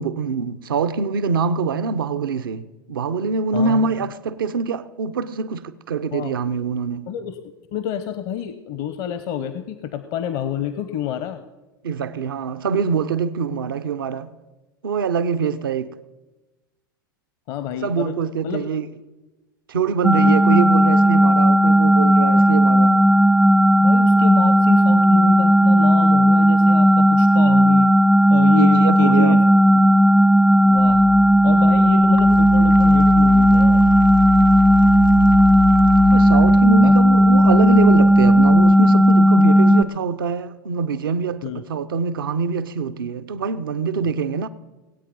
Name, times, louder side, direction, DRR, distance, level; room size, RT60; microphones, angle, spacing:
voice 1, 0.0-7.1 11.8-14.3 14.8-15.9 17.8-18.9 19.7-23.0 28.6-29.4 36.1-44.5, right 5 dB, 80° right, 0.7 m, -24 dB
voice 2, 3.5-3.9 6.1-6.3 7.1-7.4 7.7-11.4 17.5-18.1 18.4-18.7 20.1-20.6 22.4-22.5 22.8-23.0 23.8-27.9 28.3-29.4 29.8-29.9 30.6-31.0 31.4-33.8 36.8-36.9 41.4-41.6, left 9 dB, 55° left, 0.8 m, -29 dB
sound 1, 20.0-39.8, equal, 5° right, 0.3 m, -14 dB
sound 2, 30.6-39.2, left 7 dB, 90° left, 0.9 m, -29 dB
19.0 x 8.6 x 5.3 m
hypercardioid pair, 90°, 11 cm